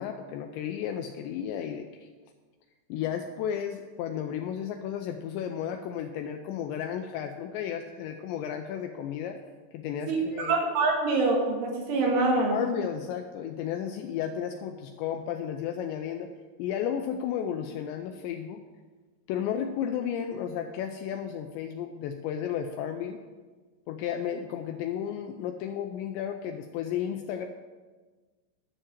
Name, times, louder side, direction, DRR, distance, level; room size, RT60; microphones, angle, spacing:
voice 1, 0.0-2.1 2.9-9.4 9.7-10.5 12.5-16.3 16.6-18.6 19.3-23.2 23.9-27.5, left 9 dB, 80° left, 5 dB, 2.7 m, -33 dB
voice 2, 10.1-12.6, right 3 dB, 85° right, 0 dB, 4.5 m, -25 dB
11.5 x 6.7 x 7.4 m, 1.4 s
omnidirectional pair, 5.4 m